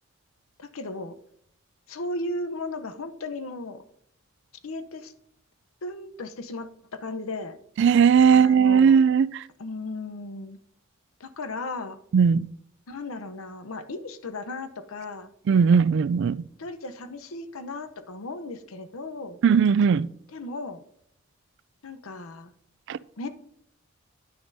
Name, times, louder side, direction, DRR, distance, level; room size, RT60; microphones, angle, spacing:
voice 1, 0.6-1.1 1.9-3.8 4.6-5.1 5.8-7.6 8.3-9.0 9.6-10.6 11.2-12.0 12.9-15.3 16.6-19.4 20.3-20.8 21.8-22.5 23.2-23.3, left 2 dB, 90° left, 0.8 m, -36 dB
voice 2, 7.8-9.4 12.1-12.5 15.5-16.4 19.4-20.1 22.9-23.0, right 6 dB, 60° right, 0.3 m, -18 dB
9.5 x 9.5 x 2.7 m
head